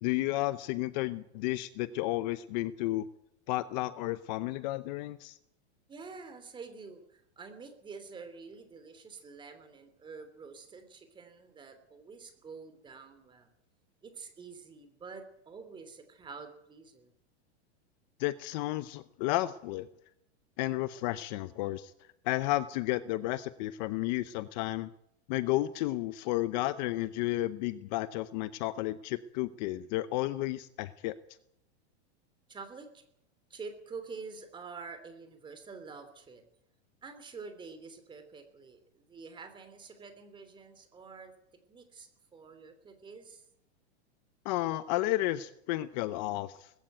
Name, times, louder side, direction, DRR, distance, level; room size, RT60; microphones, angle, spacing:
voice 1, 0.0-3.1 3.5-5.4 18.2-19.9 20.6-21.9 22.2-24.9 25.3-31.1 44.4-46.7, left 16 dB, 40° left, 14 dB, 0.8 m, -32 dB
voice 2, 5.9-13.5 14.0-17.1 32.5-33.0 33.5-36.4 37.0-41.3 41.7-43.4, right 4 dB, 15° right, 9 dB, 3.1 m, -47 dB
20.0 x 15.5 x 9.3 m, 0.76 s
supercardioid pair, 160°, 34 cm